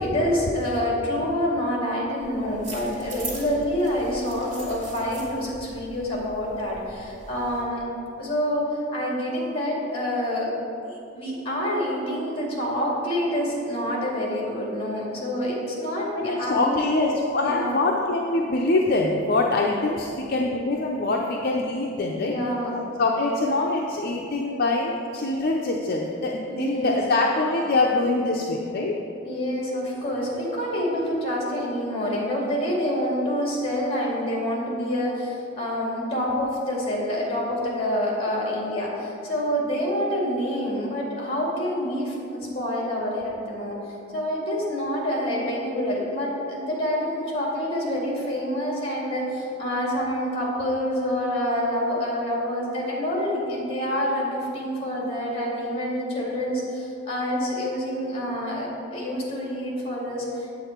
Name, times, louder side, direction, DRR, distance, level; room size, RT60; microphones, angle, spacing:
voice 1, 0.0-7.8 8.2-10.5 10.8-16.9 17.4-17.8 22.2-22.8 26.5-27.0 29.2-43.8 44.1-60.6, equal, 30° left, -3 dB, 2.2 m, -27 dB
sound 1, 2.2-7.6, right 2 dB, 65° right, 2.1 m, -41 dB
voice 2, 16.1-22.4 23.0-29.0, left 2 dB, 50° left, -1 dB, 0.6 m, -24 dB
8.5 x 8.0 x 4.4 m, 2.7 s
head